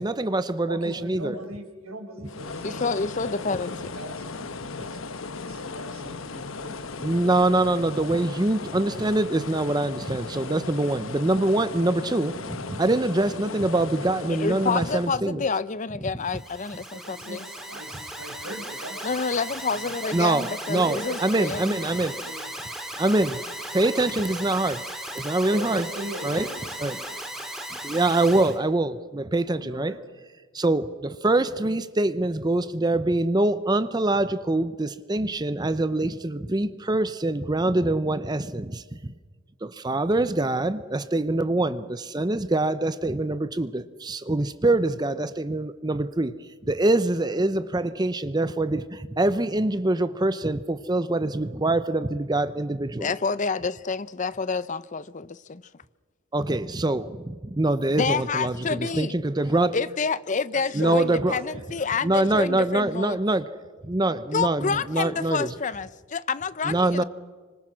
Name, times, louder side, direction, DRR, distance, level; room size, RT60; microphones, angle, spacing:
voice 1, 0.0-1.4 7.0-15.4 20.1-21.0 21.2-22.1 23.0-23.4 23.7-24.8 25.1-25.9 26.2-26.5 26.8-27.0 27.8-30.0 30.5-39.1 39.6-46.3 46.7-53.1 56.3-59.8 60.7-61.4 62.0-65.5 66.6-67.0, right 2 dB, 20° right, 0.7 m, -24 dB
voice 2, 0.7-2.9 3.2-4.4 4.8-5.2 5.4-6.8 16.9-20.0 20.7-21.2 21.7-22.7 25.5-27.2 27.7-27.9 29.5-30.0 60.5-61.9, right 1 dB, 85° right, 4.6 m, -40 dB
sound 1, 2.2-15.2, left 4 dB, 70° left, 1.1 m, -37 dB
voice 3, 2.6-3.8 14.3-17.4 19.0-20.8 21.0-21.7 53.0-55.6 57.9-59.1 59.7-63.2 64.3-67.0, left 4 dB, 35° left, 0.6 m, -28 dB
Alarm, 16.2-28.6, right 1 dB, ahead, 3.0 m, -37 dB
26.0 x 25.0 x 6.2 m
head